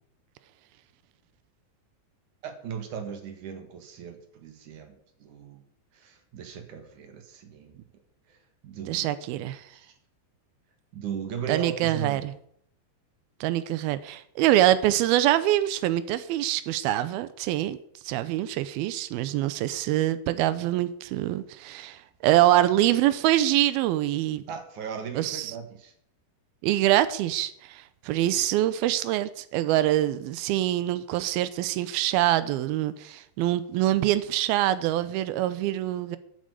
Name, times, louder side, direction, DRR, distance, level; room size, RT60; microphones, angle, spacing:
voice 1, 2.4-5.6 5.9-7.8 8.3-8.4 8.6-9.1 9.7-9.9 10.9-12.3 24.5-25.9, right 7 dB, 55° right, 6 dB, 2.7 m, -37 dB
voice 2, 8.9-9.6 11.5-12.3 13.4-17.8 18.0-24.4 25.2-25.5 26.6-36.2, right 14 dB, 85° right, 14 dB, 2.2 m, -25 dB
11.5 x 9.2 x 8.3 m, 0.68 s
omnidirectional pair, 5.2 m